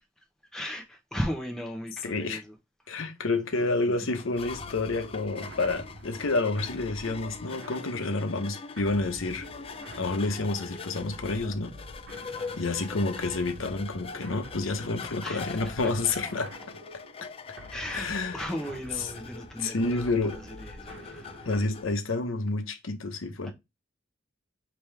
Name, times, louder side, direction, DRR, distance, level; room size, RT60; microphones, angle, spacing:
voice 1, 0.5-2.6 2.8-3.1 3.5-4.2 12.2-12.6 15.2-15.7 17.7-18.1 18.3-21.5 23.4-23.5, equal, 5° left, 0.9 m, -37 dB
voice 2, 2.0-2.4 2.9-9.5 10.0-11.8 12.6-16.5 17.9-18.3 19.6-20.4 21.4-23.5, left 3 dB, 80° left, 0.9 m, -29 dB
sound 1, 4.1-21.9, left 5 dB, 30° left, 0.4 m, -43 dB
sound 2, 4.4-22.0, equal, 65° right, 1.1 m, -47 dB
5.4 x 2.9 x 3.3 m
head